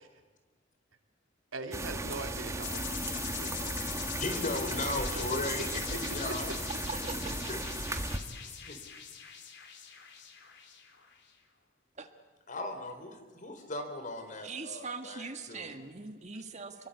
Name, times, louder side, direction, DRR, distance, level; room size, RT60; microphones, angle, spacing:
voice 1, 1.5-4.0 4.3-6.0 6.3-6.5, right 2 dB, 85° right, 5 dB, 3.3 m, -43 dB
sound 1, 1.7-8.2, right 2 dB, 15° right, 1.6 m, -36 dB
sound 2, 2.6-11.1, left 8 dB, 60° left, 3.6 m, -41 dB
voice 2, 4.2-6.5 7.5-7.6 8.4-8.8 12.5-15.7, left 2 dB, 40° left, 7 dB, 4.3 m, -37 dB
voice 3, 6.9-7.6 12.0-12.1 14.4-16.9, right 4 dB, 35° right, 7 dB, 1.7 m, -41 dB
29.5 x 22.5 x 8.3 m, 1.3 s
head